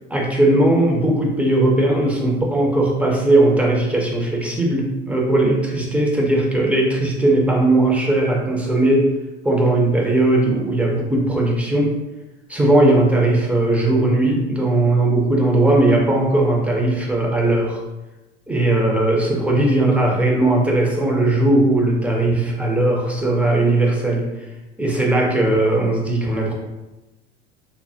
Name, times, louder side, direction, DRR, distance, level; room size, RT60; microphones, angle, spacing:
voice 1, 0.1-9.1 9.4-11.9 12.5-17.8 18.5-24.3 24.8-26.5, right 2 dB, 5° right, -2 dB, 0.4 m, -18 dB
3.2 x 2.1 x 2.5 m, 1.1 s
figure-of-eight pair, 80°, 34 cm